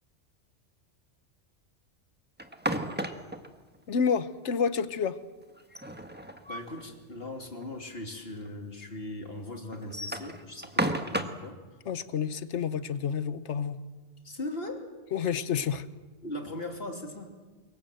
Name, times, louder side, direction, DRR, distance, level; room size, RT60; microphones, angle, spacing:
sound 1, 2.4-3.5 5.6-6.8 7.2-7.3 7.6-7.7 8.5-8.6 9.7-11.5, right 1 dB, 10° right, 1.4 m, -32 dB
voice 1, 3.9-5.2 11.9-13.8 15.1-15.8, left 7 dB, 75° left, 13 dB, 1.3 m, -29 dB
voice 2, 6.5-11.6 14.2-14.8 16.2-17.3, left 1 dB, 55° left, 4 dB, 3.2 m, -39 dB
27.5 x 23.0 x 7.8 m, 1.3 s
omnidirectional pair, 1.2 m